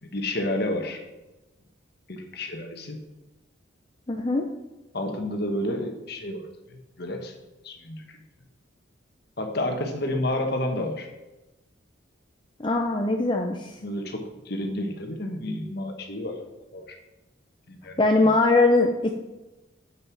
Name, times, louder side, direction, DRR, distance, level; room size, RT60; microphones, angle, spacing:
voice 1, 0.0-1.0 2.1-3.0 4.9-7.3 7.6-8.2 9.4-11.1 13.8-16.4 16.7-17.0 17.7-18.3, left 1 dB, 50° left, 4 dB, 1.4 m, -30 dB
voice 2, 4.1-4.5 12.6-13.7 18.0-19.2, left 2 dB, 25° left, 2 dB, 0.6 m, -21 dB
7.8 x 6.6 x 6.0 m, 1.0 s
head